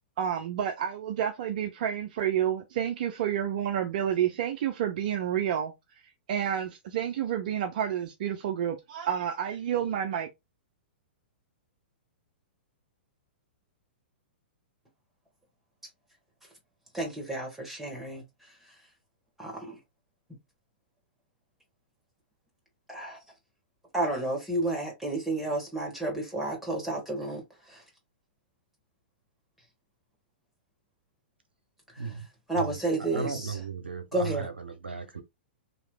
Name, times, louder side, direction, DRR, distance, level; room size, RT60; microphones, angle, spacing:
voice 1, 0.2-5.7 6.3-10.3, right 9 dB, 50° right, 0.5 m, -29 dB
voice 2, 16.9-18.2 19.4-19.7 22.9-23.2 23.9-27.4 27.7-27.8 32.5-33.6 34.1-34.5, right 2 dB, 5° right, 1.5 m, -31 dB
voice 3, 33.1-35.2, right 5 dB, 80° right, 0.7 m, -36 dB
3.1 x 2.8 x 2.2 m
figure-of-eight pair, 110°, 6 cm